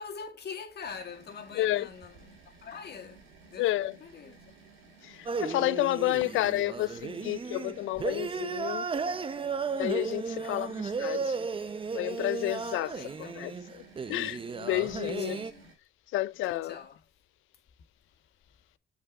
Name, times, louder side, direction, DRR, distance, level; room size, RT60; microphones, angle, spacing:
voice 1, 0.0-3.7 4.0-4.5 6.0-7.0 10.4-10.8 12.8-13.5 15.0-15.7 16.4-17.0, left 6 dB, 55° left, 1.9 m, -45 dB
sound 1, 0.9-15.8, right 4 dB, 85° right, 3.2 m, -56 dB
voice 2, 1.5-1.9 3.6-3.9 5.0-8.9 9.7-11.5 11.9-12.9 13.2-13.8 14.1-15.4 16.1-16.8, left 15 dB, 85° left, 0.5 m, -30 dB
sound 2, 5.3-15.5, right 5 dB, 25° right, 0.6 m, -34 dB
7.2 x 6.1 x 3.7 m
cardioid pair, 90°, 20 cm